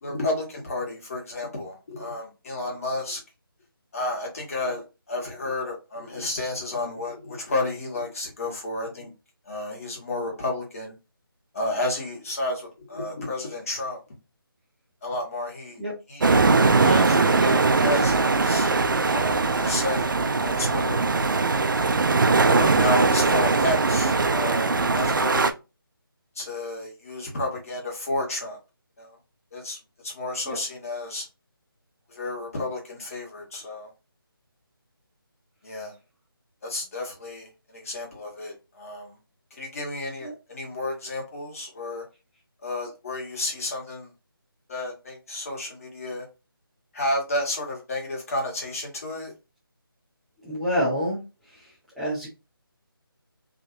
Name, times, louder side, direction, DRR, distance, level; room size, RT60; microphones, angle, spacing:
voice 1, 0.0-3.2 3.9-9.1 9.5-11.0 11.5-14.0 15.0-15.8 16.1-16.4 16.7-18.8 19.1-20.1 20.4-21.7 22.5-25.5 26.4-28.6 29.0-29.2 29.5-29.8 30.0-31.3 32.1-33.9 35.6-36.0 36.6-39.2 39.5-42.0 42.6-44.1 44.7-46.3 46.9-49.3, left 2 dB, 40° left, 0 dB, 1.9 m, -31 dB
sound 1, 16.2-25.5, right 3 dB, 60° right, 0.5 m, -21 dB
voice 2, 50.4-51.2 51.5-52.3, equal, ahead, -10 dB, 1.0 m, -28 dB
3.7 x 3.3 x 2.7 m, 0.27 s
figure-of-eight pair, 165°, 12 cm